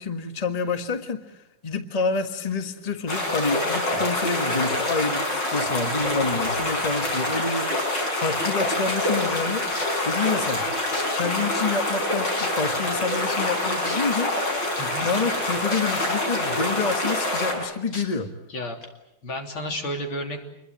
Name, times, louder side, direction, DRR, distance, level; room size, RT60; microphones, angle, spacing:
voice 1, 0.0-9.6 10.0-10.7 11.1-14.3 15.0-18.3, left 4 dB, 20° left, 7 dB, 1.5 m, -28 dB
sound 1, 3.1-17.5, left 1 dB, 60° left, 6.5 m, -26 dB
sound 2, 9.7-10.0 10.9-11.0 11.8-11.9 12.4-12.7 13.8-14.0 15.7-15.8 16.3-16.4 17.9-18.0 18.8-18.9, left 2 dB, 45° left, 4.2 m, -35 dB
voice 2, 14.8-15.1 18.5-18.8 19.2-20.4, equal, 75° left, 3 dB, 4.2 m, -31 dB
27.5 x 22.0 x 8.9 m, 0.86 s
omnidirectional pair, 2.2 m